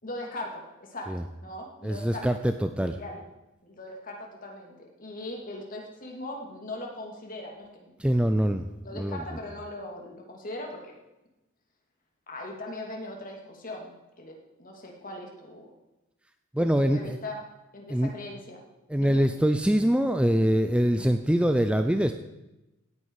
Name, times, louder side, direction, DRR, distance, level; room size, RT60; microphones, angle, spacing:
voice 1, 0.0-2.3 2.8-3.2 3.6-7.9 8.8-10.9 12.3-15.7 16.6-17.4 17.7-18.6 18.9-19.2, left 1 dB, 40° left, 0 dB, 2.8 m, -40 dB
voice 2, 1.8-3.0 8.0-9.2 16.5-17.2 17.9-18.1 18.9-22.1, equal, 5° right, 8 dB, 0.5 m, -24 dB
17.0 x 9.8 x 4.9 m, 0.98 s
head